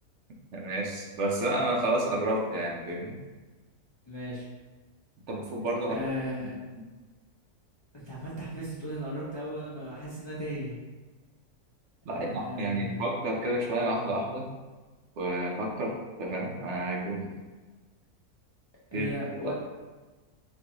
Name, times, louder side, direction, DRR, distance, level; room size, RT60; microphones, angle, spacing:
voice 1, 0.5-3.2 5.3-6.0 6.4-6.5 12.0-14.5 15.2-17.3 18.9-19.5, right 1 dB, 60° right, -1 dB, 0.9 m, -30 dB
voice 2, 4.0-4.4 5.9-6.6 7.9-10.8 12.1-13.0 18.9-19.5, equal, 40° left, -8 dB, 0.4 m, -36 dB
4.4 x 2.5 x 2.9 m, 1.3 s
omnidirectional pair, 1.6 m